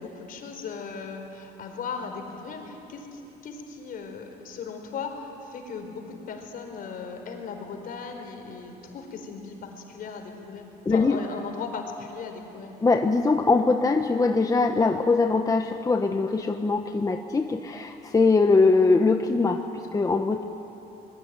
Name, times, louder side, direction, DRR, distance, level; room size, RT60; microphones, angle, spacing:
voice 1, 0.0-12.7, left 5 dB, 55° left, 4 dB, 4.7 m, -37 dB
voice 2, 10.8-11.2 12.8-20.4, left 3 dB, 20° left, 5 dB, 1.1 m, -22 dB
25.5 x 21.5 x 9.6 m, 3.0 s
cardioid pair, 110°, 17 cm